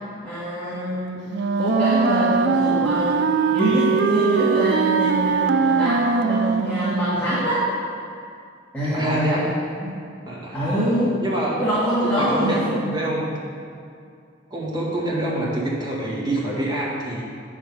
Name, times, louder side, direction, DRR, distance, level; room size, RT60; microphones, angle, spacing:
voice 1, 0.2-1.2 1.6-3.2 3.5-7.6 8.7-9.5 9.8-10.0 10.5-11.2 11.6-13.0, equal, 10° left, -12 dB, 1.8 m, -24 dB
Wind instrument woodwind instrument, 1.3-7.2, right 5 dB, 60° right, 0.3 m, -21 dB
voice 2, 8.9-9.6 10.3-10.6 11.2-11.7 12.0-13.3 14.5-17.2, right 1 dB, 20° right, -5 dB, 1.9 m, -26 dB
9.7 x 4.9 x 5.4 m, 2.4 s
head